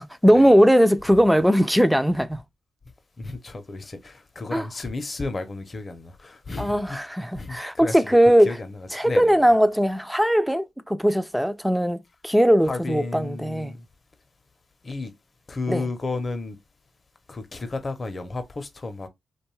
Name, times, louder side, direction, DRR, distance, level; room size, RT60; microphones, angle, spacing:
voice 1, 0.0-2.4 4.5-4.7 6.6-8.5 8.9-13.7 15.7-15.9, equal, ahead, 0.4 m, -19 dB
voice 2, 3.2-7.0 7.4-8.0 8.4-9.5 12.7-13.8 14.8-15.1 15.5-16.6 17.3-19.1, left 3 dB, 40° left, 0.6 m, -33 dB
2.6 x 2.2 x 3.0 m
cardioid pair, 65°, 0 cm